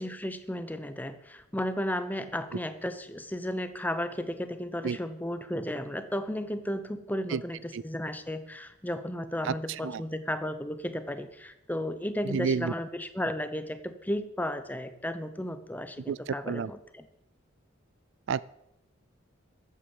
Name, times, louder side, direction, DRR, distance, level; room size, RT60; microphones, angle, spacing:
voice 1, 0.0-17.1, left 1 dB, 10° left, 10 dB, 0.9 m, -34 dB
voice 2, 12.2-12.7 16.1-16.7 18.3-18.4, right 6 dB, 65° right, 19 dB, 0.4 m, -30 dB
14.0 x 8.4 x 7.2 m, 0.84 s
head